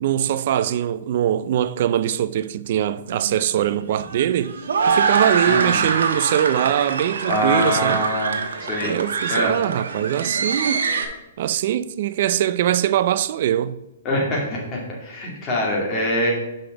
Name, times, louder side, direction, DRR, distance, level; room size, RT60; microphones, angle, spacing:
voice 1, 0.0-4.6 4.9-8.0 8.8-10.8 11.4-13.8, right 11 dB, 50° right, 0.4 m, -22 dB
sound 1, 3.1-11.0, right 5 dB, 85° right, 1.0 m, -24 dB
voice 2, 5.5-5.9 7.3-8.3 8.6-8.9 9.3-9.5 14.0-16.3, left 1 dB, 25° left, 2.5 m, -24 dB
5.8 x 5.1 x 6.0 m
hypercardioid pair, 150°, 0 cm